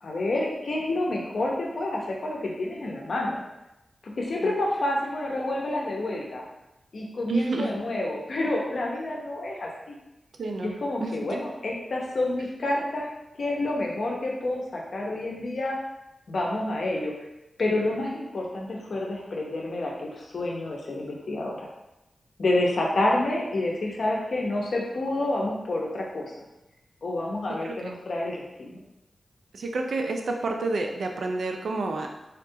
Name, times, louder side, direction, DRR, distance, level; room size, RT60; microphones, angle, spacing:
voice 1, 0.0-3.4 4.0-6.4 6.9-9.9 10.6-13.1 13.4-15.8 16.3-17.2 17.6-21.7 22.4-26.3 27.0-28.8, left 2 dB, 65° left, -1 dB, 0.6 m, -28 dB
voice 2, 7.3-7.7 10.4-11.1 27.6-27.7 29.5-32.1, right 3 dB, 85° right, 3 dB, 0.4 m, -29 dB
3.6 x 2.3 x 2.7 m, 0.94 s
wide cardioid pair, 110°, 0 cm